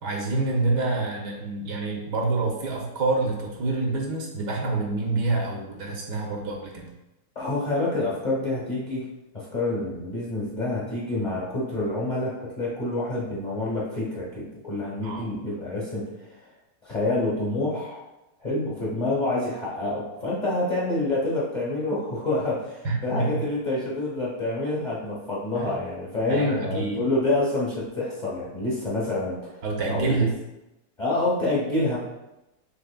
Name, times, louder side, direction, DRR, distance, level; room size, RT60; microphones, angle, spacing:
voice 1, 0.0-6.9 15.0-15.3 22.8-23.4 25.6-25.7 26.3-27.0 29.6-30.3, right 3 dB, 70° right, 0 dB, 1.3 m, -27 dB
voice 2, 7.3-9.0 9.3-16.3 16.8-18.1 18.4-29.5 29.9-30.3 31.0-32.0, left 2 dB, 30° left, -7 dB, 1.0 m, -27 dB
6.7 x 2.9 x 2.2 m, 0.94 s
omnidirectional pair, 1.9 m